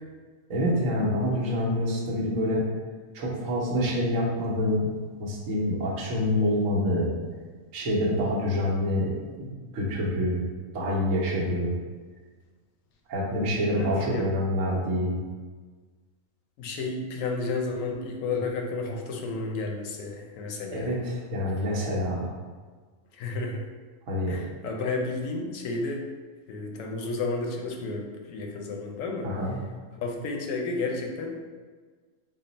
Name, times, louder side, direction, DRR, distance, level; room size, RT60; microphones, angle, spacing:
voice 1, 0.5-2.6 3.1-4.9 5.2-7.1 7.7-9.1 9.4-9.5 9.7-10.4 10.7-11.7 13.1-15.2 20.7-22.3 24.1-24.4 29.2-29.6, left 1 dB, 70° right, -4 dB, 1.2 m, -26 dB
voice 2, 13.7-14.3 16.6-21.0 23.1-23.7 24.3-26.0 26.5-29.3 30.0-31.5, left 3 dB, 75° left, 1 dB, 1.0 m, -32 dB
3.7 x 2.0 x 3.9 m, 1.4 s
omnidirectional pair, 1.4 m